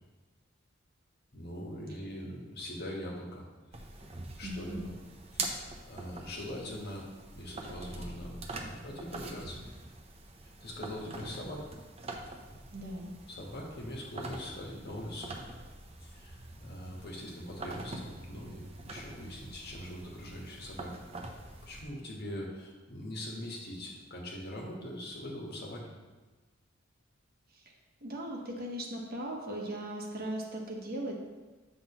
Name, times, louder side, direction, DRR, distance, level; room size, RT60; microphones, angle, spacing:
voice 1, 1.3-3.4 3.7-3.8 4.4-4.9 5.3-7.1 7.3-9.6 10.4-11.7 13.3-15.4 16.0-21.0 21.6-25.9, left 1 dB, 55° left, -2 dB, 1.4 m, -42 dB
sound 1, 3.7-21.8, right 2 dB, 30° right, 0.7 m, -44 dB
voice 2, 4.4-4.9 12.7-13.1 27.5-27.7 28.0-31.2, right 1 dB, 50° right, 0 dB, 1.1 m, -38 dB
8.4 x 5.9 x 3.0 m, 1.2 s
head